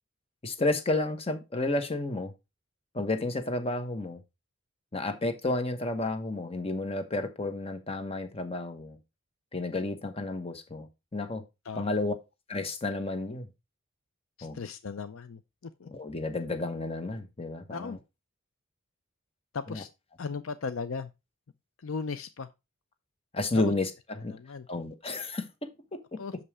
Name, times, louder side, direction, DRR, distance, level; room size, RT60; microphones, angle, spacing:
voice 1, 0.4-2.3 2.9-4.2 4.9-9.0 9.5-11.4 11.7-12.1 12.5-13.5 14.4-14.6 15.8-18.0 19.7-19.8 23.3-24.3 24.7-26.2, left 2 dB, 30° left, 1.2 m, -31 dB
voice 2, 11.7-12.1 14.4-15.9 17.7-18.0 19.5-19.9 20.2-21.1 21.8-22.5 23.5-23.7 24.3-24.7 26.2-26.3, left 5 dB, 65° left, 0.5 m, -37 dB
6.7 x 5.5 x 4.7 m
head